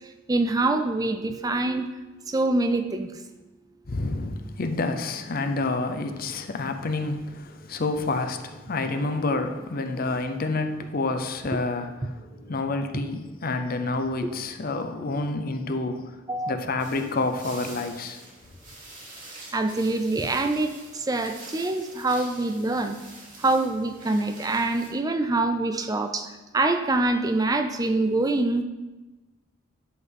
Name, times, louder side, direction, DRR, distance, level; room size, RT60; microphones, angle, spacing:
voice 1, 0.0-1.9 2.3-3.1 16.3-16.5 19.5-23.0 23.4-28.6, right 2 dB, 20° right, 0.4 m, -25 dB
voice 2, 3.9-16.1 16.5-18.2, left 3 dB, 50° left, 0.7 m, -28 dB
sound 1, 16.8-24.9, right 2 dB, 40° right, 2.8 m, -46 dB
11.0 x 3.9 x 5.4 m
head